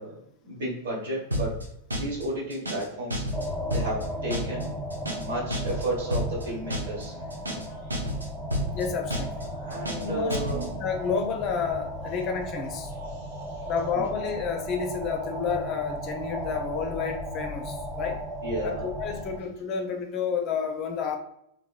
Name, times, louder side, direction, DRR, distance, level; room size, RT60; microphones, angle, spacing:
voice 1, 0.0-1.6 1.9-3.2 3.7-4.7 5.1-7.3 7.6-7.9 9.5-10.6 13.1-14.0 18.4-18.9, right 1 dB, 60° right, -3 dB, 1.3 m, -33 dB
sound 1, 1.3-1.6 1.9-2.2 2.5-2.9 3.1-3.5 3.7-4.0 4.3-4.6 4.9-5.3 5.5-5.9 6.1-6.4 6.7-7.0 7.3-7.7 7.9-8.3 8.5-8.8 9.1-9.4 9.7-10.1 10.3-10.7, equal, 80° right, 0.7 m, -30 dB
sound 2, 3.3-19.4, equal, 15° right, 0.7 m, -36 dB
voice 2, 8.7-9.5 10.0-12.9 13.7-18.2 18.6-21.2, left 6 dB, 35° left, 4 dB, 0.5 m, -30 dB
3.0 x 3.0 x 2.4 m, 0.73 s
figure-of-eight pair, 90°, 0 cm